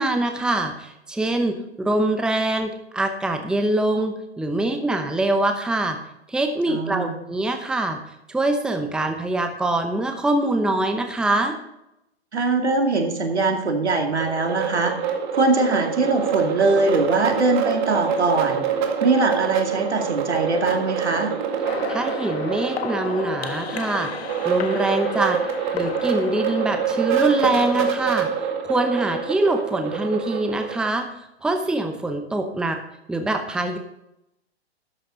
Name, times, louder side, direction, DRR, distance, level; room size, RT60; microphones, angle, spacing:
voice 1, 0.0-6.0 6.3-8.0 8.3-11.6 21.9-25.4 25.7-28.3 28.6-31.1 31.4-32.8 33.1-33.8, right 2 dB, ahead, 6 dB, 0.8 m, -24 dB
voice 2, 6.7-7.2 12.3-14.9 15.3-21.3, right 3 dB, 90° right, 3 dB, 2.4 m, -22 dB
sound 1, 14.2-30.9, right 7 dB, 45° right, 2.2 m, -26 dB
sound 2, 21.6-27.9, left 7 dB, 70° left, 1.6 m, -33 dB
12.5 x 9.0 x 3.9 m, 0.83 s
hypercardioid pair, 125°, 32 cm